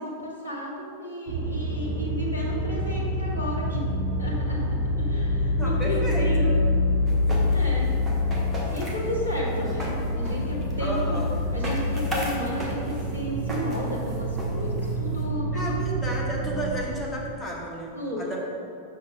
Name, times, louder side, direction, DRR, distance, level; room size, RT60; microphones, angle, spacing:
voice 1, 0.0-3.9 4.2-6.5 7.5-7.9 8.7-11.2 11.5-15.8 18.0-18.4, left 1 dB, 85° left, -5 dB, 1.3 m, -33 dB
sound 1, 1.3-16.9, left 1 dB, 45° right, 1.1 m, -27 dB
voice 2, 5.6-6.5 7.1-7.7 10.8-11.4 15.5-18.4, equal, 10° left, -3 dB, 1.3 m, -33 dB
sound 2, 7.1-15.2, equal, 10° right, 1.4 m, -36 dB
6.4 x 5.7 x 3.9 m, 2.4 s
figure-of-eight pair, 90°, 0 cm